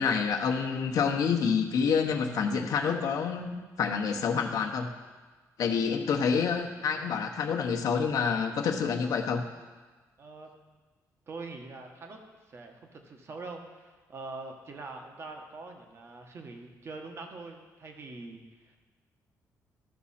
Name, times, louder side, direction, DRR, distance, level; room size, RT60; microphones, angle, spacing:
voice 1, 0.0-4.9 5.6-9.4, left 6 dB, 70° left, 3 dB, 0.9 m, -28 dB
voice 2, 10.2-10.5 11.3-12.2 12.5-18.8, right 3 dB, 40° right, 3 dB, 1.2 m, -44 dB
13.0 x 6.1 x 4.3 m, 1.3 s
cardioid pair, 120°, 6 cm